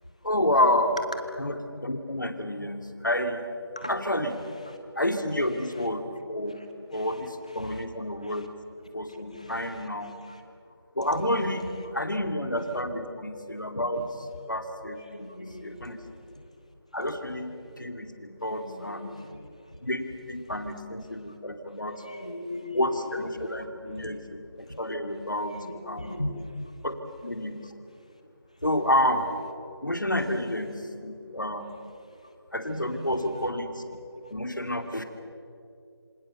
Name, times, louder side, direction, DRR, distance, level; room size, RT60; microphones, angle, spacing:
voice 1, 0.2-1.0 1.4-3.4 3.9-4.3 5.0-6.0 6.3-6.6 6.9-8.5 8.9-10.1 11.0-11.6 11.9-14.1 14.5-16.0 16.9-19.1 19.8-22.0 22.7-25.5 25.8-26.2 26.8-27.0 27.2-27.6 28.6-29.2 29.8-31.7 32.5-33.8 34.3-35.0, left 1 dB, 50° left, 6 dB, 2.6 m, -29 dB
voice 2, 5.3-5.9 6.5-6.7 6.9-7.2 7.6-7.8 8.2-8.5 9.1-10.4 11.6-12.0 15.0-16.0 18.4-19.5 22.0-22.9 23.4-23.5 25.5-26.8 32.2-32.3, left 1 dB, 15° left, 5 dB, 1.2 m, -40 dB
27.5 x 26.0 x 7.0 m, 2.6 s
figure-of-eight pair, 175°, 13 cm